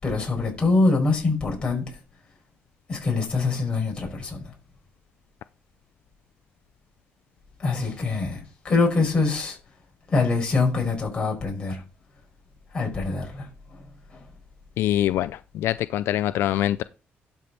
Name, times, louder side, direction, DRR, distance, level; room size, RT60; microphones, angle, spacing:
voice 1, 0.0-1.8 2.9-4.4 7.6-9.6 10.1-11.8 12.7-13.5, left 3 dB, 25° left, 5.4 m, -24 dB
voice 2, 14.8-16.8, left 13 dB, 80° left, 0.4 m, -24 dB
12.0 x 5.3 x 4.2 m
cardioid pair, 135°, 4 cm